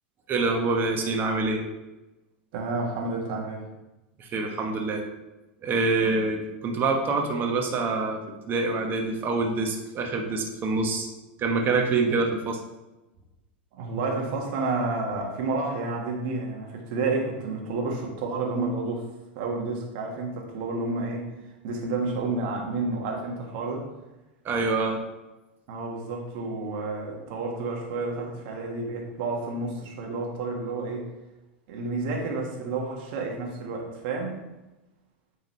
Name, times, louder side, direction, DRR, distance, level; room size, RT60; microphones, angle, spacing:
voice 1, 0.3-1.6 4.2-5.0 5.6-8.2 8.5-11.1 11.4-12.6 24.4-25.0, right 3 dB, 35° right, 2 dB, 1.3 m, -26 dB
voice 2, 2.5-3.6 13.7-19.1 19.3-21.3 21.6-23.9 25.7-31.1 31.7-34.4, right 3 dB, 60° right, 0 dB, 1.6 m, -30 dB
9.0 x 3.7 x 3.2 m, 1.0 s
hypercardioid pair, 100°, 6 cm